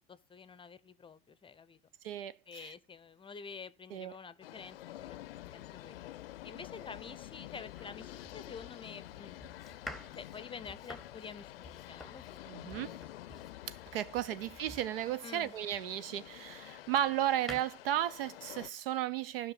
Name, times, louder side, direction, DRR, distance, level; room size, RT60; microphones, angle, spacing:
voice 1, 0.1-1.8 2.5-5.2 5.5-6.1 6.4-9.5 10.1-12.8 14.7-14.8 15.2-15.5, left 5 dB, 20° left, 0.6 m, -49 dB
voice 2, 2.0-2.7 3.9-4.1 12.5-13.0 13.7-19.5, right 11 dB, 75° right, 0.8 m, -34 dB
sound 1, 4.4-18.7, left 14 dB, 80° left, 0.6 m, -49 dB
Domestic sounds home sounds, 7.8-15.9 16.5-17.6, left 1 dB, ahead, 1.0 m, -51 dB
15.5 x 5.9 x 4.0 m
hypercardioid pair, 90°, 29 cm